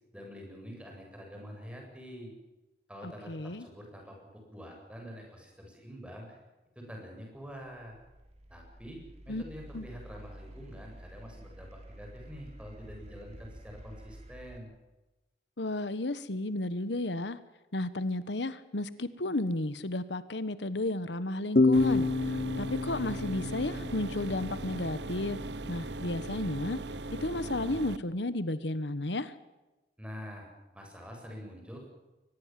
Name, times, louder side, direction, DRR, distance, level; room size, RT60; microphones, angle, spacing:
voice 1, 0.1-2.3 2.9-6.4 6.7-8.0 8.5-14.7 30.0-30.5 30.7-31.9, equal, 5° right, 1 dB, 7.9 m, -46 dB
voice 2, 3.0-3.7 9.3-9.4 9.7-9.9 15.6-17.4 17.7-25.4 25.7-26.8 27.2-29.3, left 2 dB, 85° left, 14 dB, 1.3 m, -33 dB
sound 1, 7.4-14.6, right 1 dB, 40° right, 3.4 m, -50 dB
sound 2, 21.6-25.0, left 3 dB, 55° left, 0.9 m, -28 dB
sound 3, 21.7-28.0, right 2 dB, 80° right, 1.1 m, -39 dB
23.5 x 21.0 x 7.7 m, 1.1 s
head